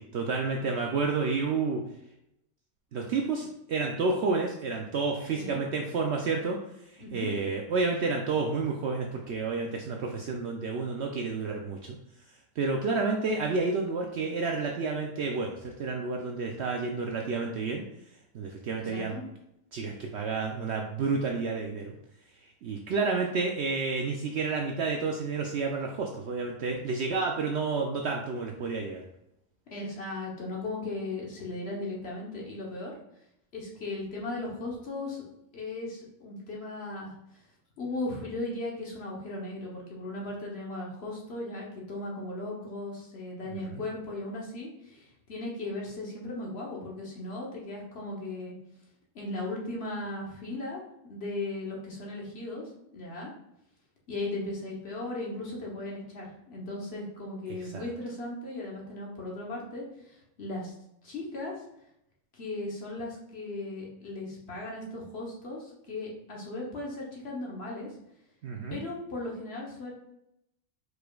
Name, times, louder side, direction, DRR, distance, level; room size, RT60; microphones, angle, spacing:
voice 1, 0.0-1.8 2.9-12.0 12.6-17.8 18.3-19.2 19.7-22.0 22.4-29.0 43.5-43.8 57.6-57.8 68.4-68.8, right 4 dB, 65° right, 1 dB, 0.7 m, -30 dB
voice 2, 5.3-5.6 7.0-7.3 18.8-19.2 29.7-32.9 33.5-35.3 35.5-37.1 37.8-48.6 49.1-50.8 51.1-53.3 54.1-60.7 61.0-61.5 62.3-67.9 68.7-69.9, left 2 dB, 50° left, -2 dB, 1.2 m, -37 dB
4.9 x 4.7 x 2.3 m, 0.82 s
omnidirectional pair, 1.5 m